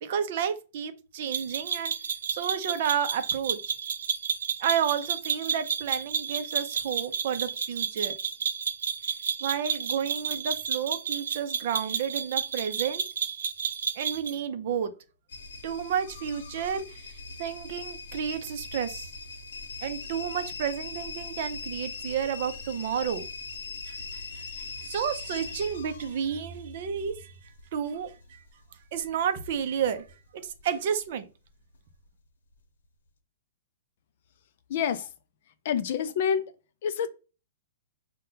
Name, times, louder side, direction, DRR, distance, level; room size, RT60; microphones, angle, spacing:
voice 1, 0.0-1.9 2.3-3.6 4.6-8.1 9.4-13.0 14.0-14.9 15.6-17.1 17.4-19.1 19.8-23.3 23.9-24.4 24.8-27.3 27.7-28.4 28.9-30.0 30.4-31.3, right 8 dB, 40° right, 0.5 m, -31 dB
sound 1, 1.3-14.4, right 7 dB, 85° right, 0.6 m, -31 dB
sound 2, 15.3-30.2 30.4-31.1 31.6-32.1 32.5-32.6, left 4 dB, 85° left, 0.8 m, -41 dB
voice 2, 34.7-35.1 35.6-36.5 36.8-37.1, left 7 dB, 40° left, 0.4 m, -27 dB
5.3 x 2.2 x 3.8 m
hypercardioid pair, 175°, 0 cm